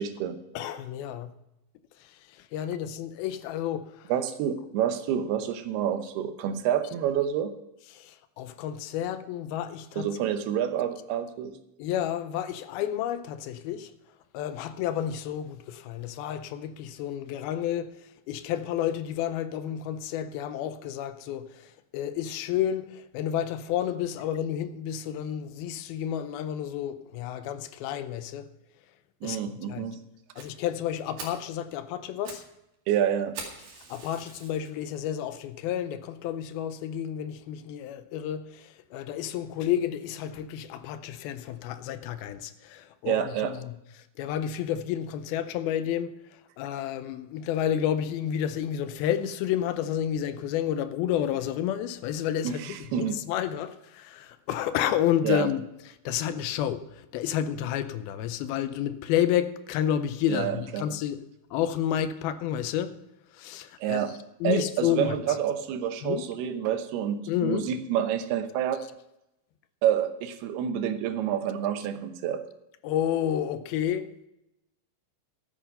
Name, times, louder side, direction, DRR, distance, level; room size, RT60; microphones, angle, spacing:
voice 1, 0.0-0.4 4.1-7.5 10.0-11.5 29.2-30.0 32.9-33.3 43.1-43.5 52.4-53.2 55.2-55.5 60.3-60.9 63.8-64.1 64.4-68.8 69.8-72.4, right 9 dB, 85° right, 2.9 m, -28 dB
voice 2, 0.5-1.3 2.0-4.1 7.9-10.2 11.8-13.9 14.3-28.5 29.2-29.9 30.4-32.4 33.9-55.6 56.1-61.2 61.5-62.9 63.3-64.1 64.4-65.2 66.0-66.2 67.3-67.7 72.8-74.1, left 10 dB, 85° left, 2.5 m, -30 dB
Fire, 30.4-30.5 30.9-31.0 31.2-31.5 32.0-32.5 32.7-32.8 33.3-34.7 35.3-35.4 35.9-36.0 36.3-36.4 36.7-36.8, right 4 dB, 65° right, 3.8 m, -42 dB
13.5 x 8.6 x 5.4 m
omnidirectional pair, 4.5 m